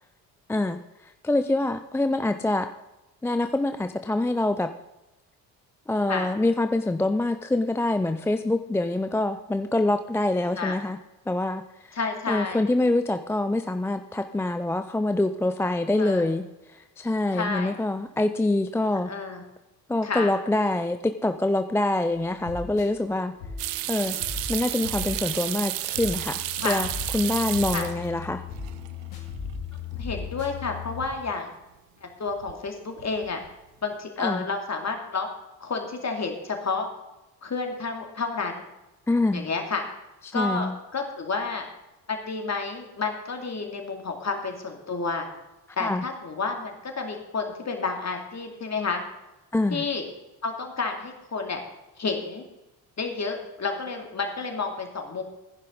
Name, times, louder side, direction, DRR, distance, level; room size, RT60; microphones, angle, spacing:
voice 1, 0.5-2.7 3.2-4.7 5.9-11.0 11.3-12.0 12.3-16.4 16.7-19.1 19.9-23.3 23.9-24.2 24.5-26.9 27.1-28.4 34.2-34.5 39.1-39.5 40.2-40.8 45.8-46.0 49.5-49.8, left 2 dB, 5° left, 9 dB, 0.4 m, -25 dB
voice 2, 11.9-12.6 15.9-16.2 17.3-17.8 18.8-19.4 20.0-20.3 26.6-26.8 27.7-27.9 30.0-31.5 32.0-33.4 33.8-35.3 35.6-36.9 37.4-38.6 39.3-39.8 40.3-41.6 42.2-45.3 45.8-49.0 49.7-50.0 50.4-51.6 52.0-52.4 53.0-55.2, left 4 dB, 30° left, 3 dB, 2.7 m, -30 dB
sound 1, 22.1-31.1, left 5 dB, 75° left, 2.1 m, -37 dB
sound 2, 23.6-28.3 28.5-29.2 29.5-29.6 32.3-32.7 33.0-33.5, right 15 dB, 60° right, 0.8 m, -31 dB
15.0 x 10.5 x 3.9 m, 0.99 s
figure-of-eight pair, 45°, 50 cm